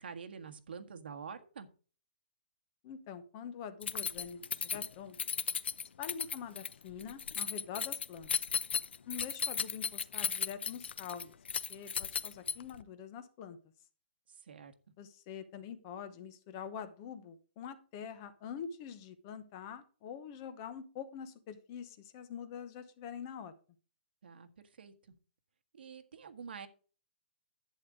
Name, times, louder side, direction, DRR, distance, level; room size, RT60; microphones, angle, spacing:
voice 1, 0.0-1.7 14.3-14.7 24.2-24.5 24.8-24.9 25.7-26.7, right 6 dB, 60° right, 7 dB, 1.6 m, -47 dB
voice 2, 2.8-5.2 6.0-8.3 9.1-11.3 11.7-13.6 15.0-23.5, left 7 dB, 20° left, 11 dB, 0.9 m, -45 dB
Keys jangling, 3.8-12.8, left 6 dB, 75° left, 0.7 m, -36 dB
11.0 x 8.6 x 3.7 m, 0.38 s
hypercardioid pair, 180°, 6 cm